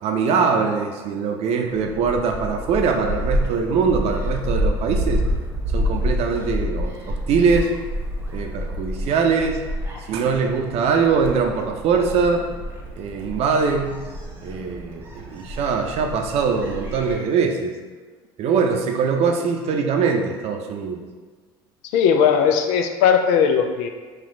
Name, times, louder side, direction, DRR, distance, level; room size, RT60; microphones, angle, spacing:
voice 1, 0.0-5.2 5.7-7.7 8.3-9.6 10.1-12.4 13.0-14.0 14.4-17.7 18.4-21.0, right 5 dB, 60° right, 3 dB, 0.6 m, -22 dB
Gull seagull, 1.7-17.1, equal, 15° right, 1.0 m, -28 dB
voice 2, 21.9-23.9, left 7 dB, 75° left, 6 dB, 0.4 m, -18 dB
4.3 x 2.4 x 3.7 m, 1.4 s
hypercardioid pair, 75°, 12 cm